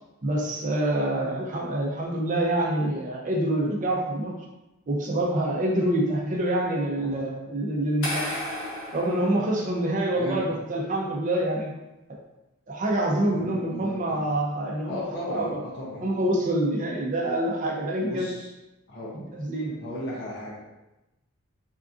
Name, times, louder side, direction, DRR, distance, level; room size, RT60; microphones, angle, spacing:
voice 1, 0.2-4.3 4.9-8.3 8.9-11.7 12.7-15.0 15.3-15.6 16.0-18.3 19.1-19.7, right 1 dB, 35° right, -1 dB, 0.5 m, -26 dB
sound 1, 8.0-10.1, left 1 dB, 75° left, 0.9 m, -34 dB
voice 2, 10.2-10.5 13.2-14.3 14.9-16.4 18.0-18.5 18.9-19.2 19.8-20.6, equal, 55° left, -5 dB, 0.6 m, -36 dB
3.5 x 2.5 x 2.4 m, 0.98 s
head